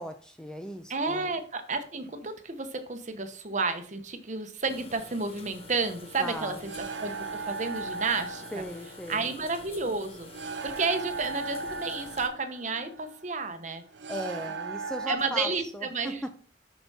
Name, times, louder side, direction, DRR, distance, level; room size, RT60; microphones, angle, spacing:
voice 1, 0.0-1.3 6.2-6.7 8.5-9.3 14.1-16.3, equal, 5° left, 6 dB, 0.5 m, -38 dB
voice 2, 0.9-8.4 9.1-10.3 10.6-13.8 15.1-16.2, right 3 dB, 40° right, 8 dB, 0.9 m, -31 dB
sound 1, 4.7-12.3, left 3 dB, 35° left, 0.9 m, -48 dB
sound 2, 5.6-15.2, right 4 dB, 85° right, 0.6 m, -38 dB
7.0 x 6.0 x 4.1 m, 0.43 s
head